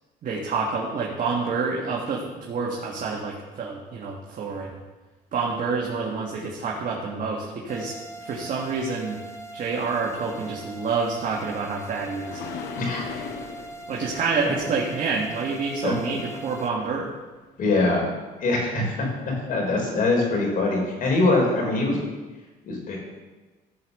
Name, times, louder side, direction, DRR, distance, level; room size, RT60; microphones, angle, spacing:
voice 1, 0.2-4.8 5.3-8.0 8.2-9.2 9.5-12.4 13.9-17.1, right 4 dB, 50° right, -3 dB, 1.8 m, -28 dB
sound 1, 7.7-16.7, right 2 dB, 15° left, 1.4 m, -41 dB
sound 2, 11.2-16.2 20.0-20.2 20.8-20.9, left 6 dB, 80° left, 1.1 m, -40 dB
voice 2, 17.6-18.0 18.4-22.0 22.6-23.0, left 2 dB, 55° left, 0 dB, 4.1 m, -23 dB
14.5 x 5.3 x 6.5 m, 1.2 s
cardioid pair, 110°, 17 cm